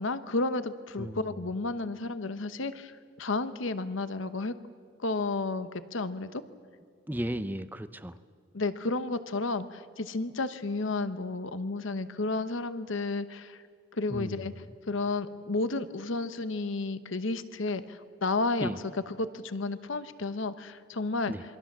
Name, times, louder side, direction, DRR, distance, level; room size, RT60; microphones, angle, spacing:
voice 1, 0.0-4.5 5.0-6.4 8.5-13.6 13.9-14.5 14.9-18.7 19.1-21.3, left 3 dB, 75° left, 12 dB, 1.0 m, -32 dB
voice 2, 1.0-1.3 7.1-8.2 14.1-14.4 18.6-18.8 21.3-21.4, right 1 dB, 10° right, 12 dB, 0.6 m, -34 dB
27.0 x 23.5 x 7.4 m, 2.1 s
head